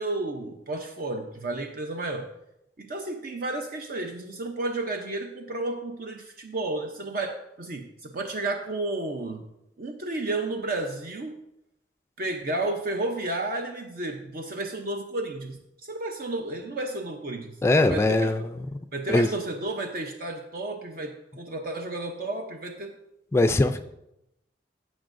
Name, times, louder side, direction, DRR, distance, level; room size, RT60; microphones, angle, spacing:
voice 1, 0.0-2.3 2.8-9.5 9.8-11.3 12.2-18.5 18.9-22.9, right 2 dB, 55° right, 4 dB, 0.7 m, -32 dB
voice 2, 17.6-18.4 19.1-19.3 23.3-23.8, left 2 dB, 15° left, 8 dB, 0.3 m, -21 dB
15.0 x 6.2 x 2.6 m, 0.86 s
head